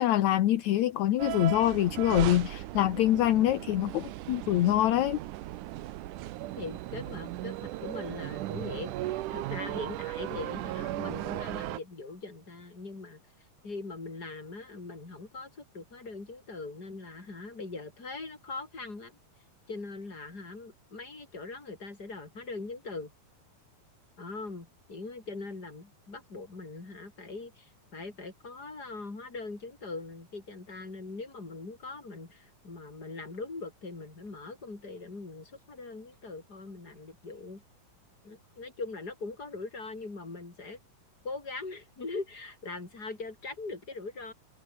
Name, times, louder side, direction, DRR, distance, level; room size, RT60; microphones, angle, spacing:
voice 1, 0.0-5.2, left 13 dB, 65° left, 2.0 m, -25 dB
sound 1, 1.2-11.8, right 16 dB, 70° right, 2.1 m, -37 dB
voice 2, 6.6-13.2 13.6-19.1 19.7-23.1 24.2-37.6 38.2-40.8 41.2-44.3, left 3 dB, 25° left, 5.3 m, -41 dB
omnidirectional pair, 4.3 m